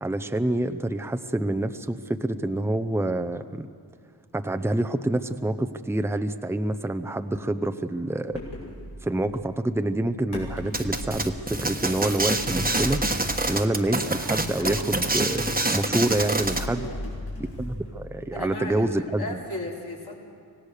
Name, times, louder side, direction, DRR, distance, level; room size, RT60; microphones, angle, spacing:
voice 1, 0.0-3.7 4.3-8.4 9.0-13.0 13.5-16.9 17.6-19.4, right 1 dB, 5° right, 7 dB, 0.7 m, -27 dB
sound 1, 8.3-8.8 10.3-11.3 12.3-13.6 14.3-15.7 16.4-18.3, left 1 dB, 90° left, 6.4 m, -36 dB
sound 2, 10.7-16.7, right 2 dB, 20° right, 1.3 m, -26 dB
voice 2, 16.7-17.2 18.3-20.2, left 2 dB, 70° left, -3 dB, 3.6 m, -36 dB
25.5 x 18.0 x 6.6 m, 2.2 s
wide cardioid pair, 90°, 40 cm